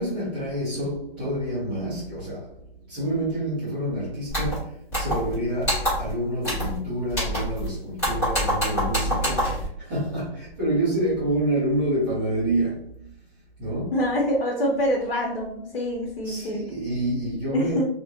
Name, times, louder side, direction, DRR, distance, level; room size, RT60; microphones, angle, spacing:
voice 1, 0.0-2.5 2.9-12.9 13.6-13.9 16.2-17.8, right 1 dB, 10° right, 0.6 m, -28 dB
sound 1, 4.3-4.6 4.9-5.3 5.6-6.1 6.4-6.8 7.1-7.7 8.0-9.7, equal, 10° left, 1.2 m, -26 dB
voice 2, 13.9-16.6 17.5-17.8, equal, 75° left, 1.0 m, -25 dB
2.9 x 2.4 x 2.7 m
hypercardioid pair, 165°, 31 cm